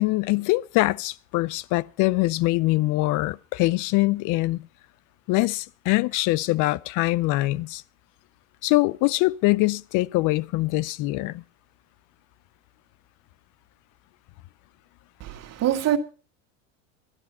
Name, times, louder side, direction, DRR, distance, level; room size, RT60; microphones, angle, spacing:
voice 1, 0.0-4.7 5.3-7.8 8.6-11.4, left 20 dB, 55° left, 0.6 m, -23 dB
voice 2, 15.2-16.0, right 11 dB, 40° right, 2.0 m, -24 dB
12.5 x 12.0 x 5.6 m
supercardioid pair, 115°, 38 cm